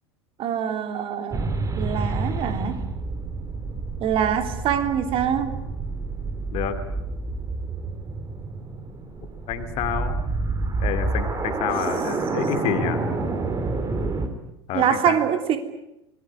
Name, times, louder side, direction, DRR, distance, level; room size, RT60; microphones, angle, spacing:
voice 1, 0.4-2.8 4.0-5.6 14.7-15.6, right 8 dB, 40° right, 8 dB, 3.2 m, -24 dB
sound 1, 1.3-14.3, right 3 dB, 20° right, 3.4 m, -28 dB
voice 2, 9.5-10.1 10.8-13.0 14.7-15.2, left 9 dB, 45° left, 8 dB, 2.7 m, -28 dB
26.5 x 21.0 x 9.7 m, 0.87 s
figure-of-eight pair, 80°, 15 cm